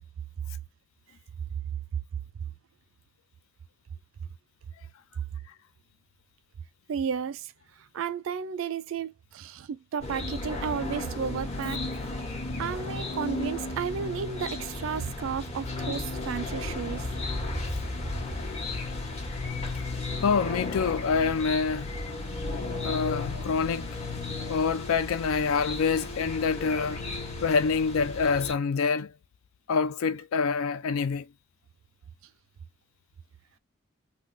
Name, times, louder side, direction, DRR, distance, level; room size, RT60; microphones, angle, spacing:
voice 1, 6.9-7.5 7.8-11.8 12.6-17.1, right 7 dB, 70° right, 0.3 m, -33 dB
sound 1, 10.0-28.5, left 2 dB, 30° left, 1.0 m, -34 dB
voice 2, 20.2-21.9 22.8-24.0 24.5-27.0 27.4-29.1 29.7-31.3, left 5 dB, 85° left, 0.4 m, -26 dB
3.7 x 2.2 x 2.5 m
head